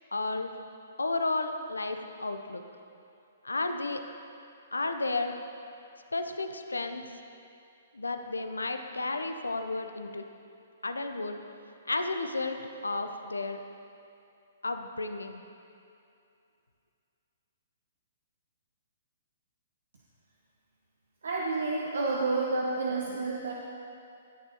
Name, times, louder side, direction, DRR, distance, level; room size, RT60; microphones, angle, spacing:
voice 1, 0.1-0.5 1.0-2.6 3.4-4.0 4.7-5.4 6.1-7.0 7.9-10.3 10.8-11.4 11.9-13.6 14.6-15.4, left 3 dB, 90° left, 7 dB, 0.6 m, -32 dB
voice 2, 21.2-23.5, right 3 dB, 75° right, -2 dB, 0.9 m, -29 dB
18.5 x 6.7 x 2.9 m, 2.6 s
hypercardioid pair, 125°, 0 cm